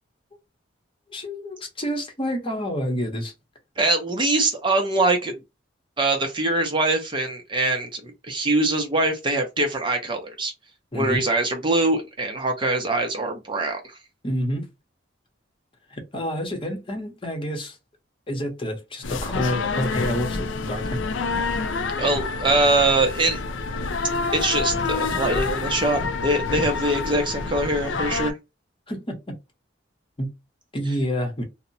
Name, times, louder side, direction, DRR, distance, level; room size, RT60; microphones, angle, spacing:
voice 1, 1.1-3.3 10.9-11.2 14.2-14.7 15.9-17.8 18.3-21.0 26.6-26.7 28.9-29.3 30.2-30.3 30.7-31.4, equal, 30° left, 0.8 m, -28 dB
voice 2, 3.8-5.3 6.0-10.5 10.9-14.0 22.0-23.4 24.3-28.4, right 2 dB, 25° right, 0.5 m, -23 dB
sound 1, 19.0-28.3, left 4 dB, 75° left, 0.4 m, -27 dB
2.7 x 2.0 x 2.6 m
head